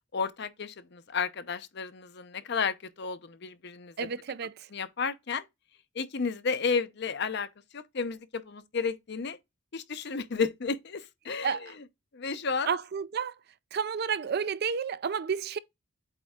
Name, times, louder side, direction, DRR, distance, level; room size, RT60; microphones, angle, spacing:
voice 1, 0.1-4.1 4.7-5.5 5.9-7.5 7.7-9.4 9.7-11.7 12.1-12.7, left 5 dB, 60° left, 0.7 m, -32 dB
voice 2, 4.0-4.7 11.4-11.7 12.7-13.4 13.7-15.6, right 6 dB, 55° right, 0.4 m, -31 dB
8.1 x 3.5 x 3.6 m
head